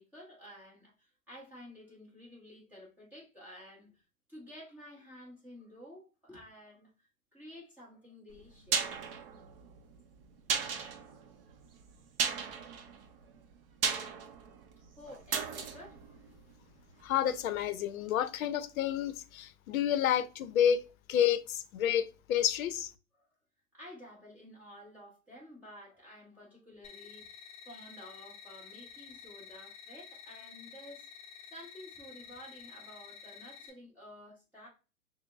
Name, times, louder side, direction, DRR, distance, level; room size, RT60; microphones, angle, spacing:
voice 1, 0.0-4.0 4.3-9.1 14.4-16.2 23.2-23.3 23.7-27.4 27.7-31.1 31.5-34.7, left 1 dB, 5° right, 0.7 m, -52 dB
sound 1, 8.3-17.2 17.5-17.6, right 6 dB, 45° right, 0.5 m, -36 dB
voice 2, 17.0-20.8 21.1-22.9, left 10 dB, 75° left, 0.5 m, -29 dB
sound 2, 26.8-33.7, left 6 dB, 35° left, 1.0 m, -51 dB
6.0 x 2.0 x 2.2 m
hypercardioid pair, 155°, 42 cm